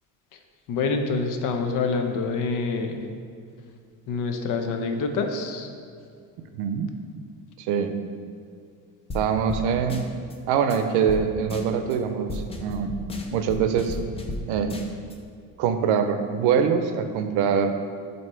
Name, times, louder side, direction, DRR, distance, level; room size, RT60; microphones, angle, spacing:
voice 1, 0.7-3.0 4.1-5.7, left 4 dB, 55° left, 5 dB, 0.6 m, -26 dB
voice 2, 7.6-7.9 9.1-10.1 10.5-12.9 13.3-14.0 14.5-14.7 15.6-17.8, right 7 dB, 90° right, 8 dB, 0.6 m, -23 dB
sound 1, 9.1-9.2 9.5-9.6 9.9-10.3 10.7-10.8 11.1-11.2 11.5-11.9 12.3-14.4 14.7-15.1, left 2 dB, 15° left, 0.4 m, -33 dB
7.6 x 2.8 x 4.4 m, 2.2 s
cardioid pair, 130°, 37 cm